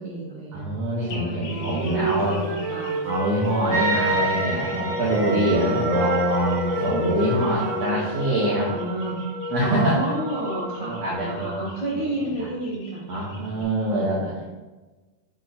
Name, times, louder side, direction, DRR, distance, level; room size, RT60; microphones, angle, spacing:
voice 1, 0.0-0.7 1.0-1.5 1.9-3.0 3.5-4.0 5.2-5.8 7.6-7.8 8.6-9.2 9.6-13.0 13.5-13.6 13.9-14.0, right 1 dB, 65° left, -9 dB, 0.8 m, -31 dB
voice 2, 0.5-2.4 3.0-8.7 9.5-10.1 10.8-11.7 12.4-12.5 13.1-14.4, right 1 dB, 85° right, -6 dB, 1.4 m, -24 dB
sound 1, 1.1-13.6, left 3 dB, 80° left, 1.6 m, -46 dB
Wind instrument woodwind instrument, 1.4-4.6 5.0-8.4, equal, 60° right, 0.8 m, -30 dB
sound 2, 3.7-11.3, right 1 dB, 45° right, 1.6 m, -29 dB
8.3 x 4.7 x 2.6 m, 1.2 s
omnidirectional pair, 4.7 m